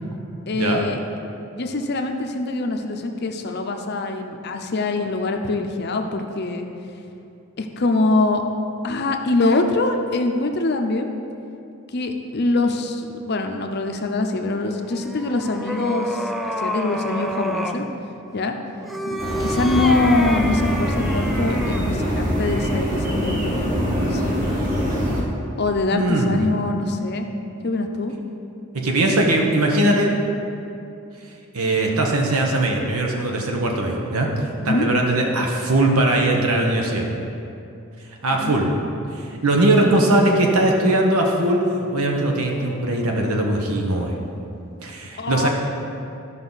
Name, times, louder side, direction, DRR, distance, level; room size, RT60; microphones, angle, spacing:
voice 1, 0.5-1.0 1.6-6.7 7.6-8.4 8.8-11.1 11.9-17.9 18.3-18.6 19.1-23.6 24.0-24.4 25.6-27.3 27.6-28.1 34.6-34.9 38.3-38.6 45.2-45.5, left 2 dB, 50° left, 5 dB, 0.6 m, -23 dB
sound 1, 14.9-17.8 18.8-21.9, equal, ahead, 0.3 m, -29 dB
sound 2, 19.2-25.2, equal, 35° right, 1.7 m, -24 dB
voice 2, 25.9-26.5 28.7-30.1 31.5-34.3 34.6-37.1 38.2-38.7 39.1-41.6 41.9-44.2 44.8-45.5, right 1 dB, 85° right, 1 dB, 1.1 m, -20 dB
13.0 x 5.5 x 4.0 m, 2.7 s
head